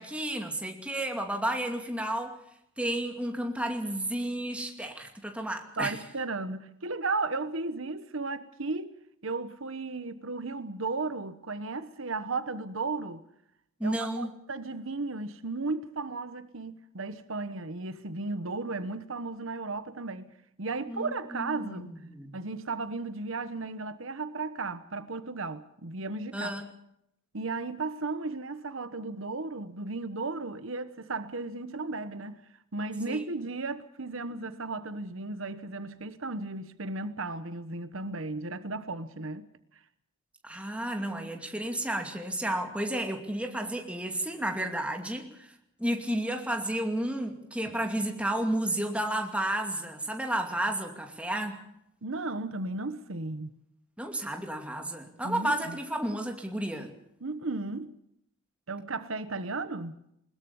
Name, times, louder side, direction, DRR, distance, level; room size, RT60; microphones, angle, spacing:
voice 1, 0.0-2.4 2.8-6.0 13.8-14.3 20.9-22.4 26.3-26.7 33.1-33.2 40.4-45.5 45.8-51.6 54.0-56.9, right 1 dB, 5° right, 2.5 m, -32 dB
voice 2, 5.8-8.9 9.2-13.2 13.8-20.3 20.6-21.9 22.3-26.5 27.3-32.4 32.7-39.5 47.7-47.8 52.0-53.5 55.2-55.8 57.2-57.9 58.7-60.0, right 3 dB, 70° right, 1.2 m, -35 dB
21.0 x 20.5 x 7.1 m
head